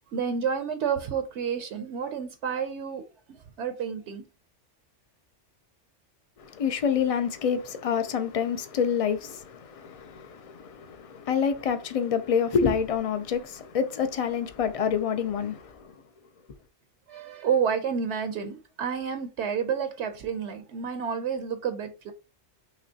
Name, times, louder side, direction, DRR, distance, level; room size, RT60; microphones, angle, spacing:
voice 1, 0.1-4.3 17.1-22.1, right 7 dB, 75° right, 0.9 m, -30 dB
voice 2, 6.4-15.9, left 7 dB, 60° left, 0.3 m, -27 dB
5.9 x 3.0 x 2.7 m
omnidirectional pair, 1.2 m